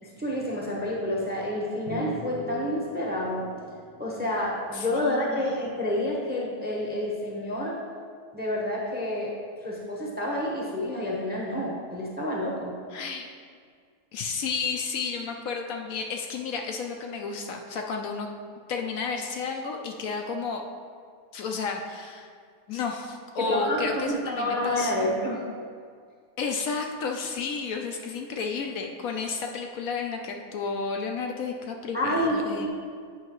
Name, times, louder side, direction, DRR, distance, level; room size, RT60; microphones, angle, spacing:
voice 1, 0.0-3.5 4.0-7.8 8.3-9.3 9.6-12.7 23.4-25.4 31.9-32.7, left 1 dB, 10° right, -3 dB, 0.7 m, -29 dB
sound 1, 1.9-5.4, left 1 dB, 30° left, 0.9 m, -41 dB
voice 2, 4.7-5.5 12.9-13.3 14.1-18.3 18.7-20.6 21.3-22.3 22.7-25.1 26.4-32.7, left 5 dB, 70° left, 3 dB, 0.9 m, -32 dB
8.6 x 5.5 x 3.0 m, 2.1 s
omnidirectional pair, 1.6 m